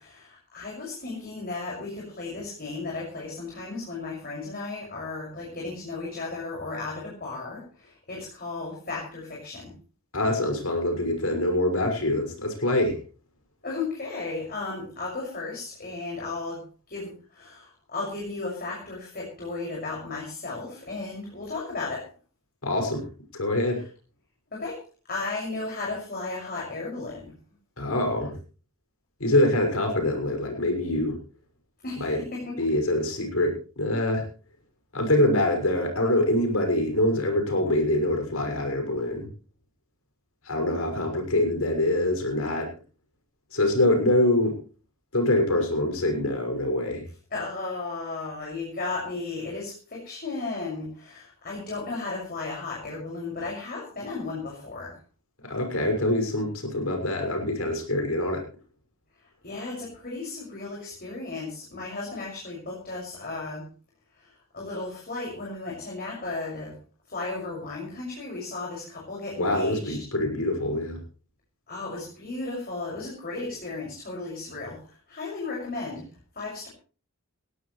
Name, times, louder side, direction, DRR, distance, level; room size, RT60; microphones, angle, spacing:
voice 1, 0.0-9.7 13.6-16.6 16.9-22.1 24.5-27.3 31.8-32.7 47.3-55.0 59.4-63.7 64.1-66.8 67.1-70.0 71.7-76.1 76.3-76.7, left 3 dB, 45° left, -3 dB, 6.4 m, -35 dB
voice 2, 10.1-13.0 22.6-23.1 23.3-23.8 27.8-28.4 29.2-31.2 32.0-32.2 32.6-34.3 34.9-39.3 40.4-42.7 43.5-44.6 45.1-47.0 55.4-58.4 69.4-71.0, left 1 dB, 75° left, 3 dB, 6.4 m, -24 dB
19.5 x 17.0 x 3.3 m, 0.37 s
head